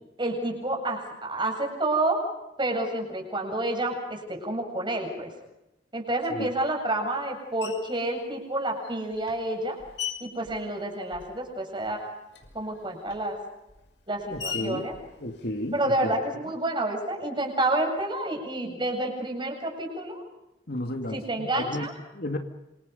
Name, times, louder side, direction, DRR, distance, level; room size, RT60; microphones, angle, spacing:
voice 1, 0.2-2.2 2.6-5.3 5.9-9.8 10.2-12.0 12.5-13.4 14.1-14.9 15.7-20.2 21.1-21.9, right 1 dB, 25° right, 2 dB, 7.8 m, -29 dB
Screech, 7.6-8.1 8.8-11.5 11.8-16.1, left 7 dB, 75° left, 6.0 m, -41 dB
voice 2, 14.3-14.9 15.2-16.1 20.7-21.9 22.1-22.4, left 1 dB, 60° left, 3 dB, 2.5 m, -33 dB
28.0 x 27.0 x 5.5 m, 0.91 s
head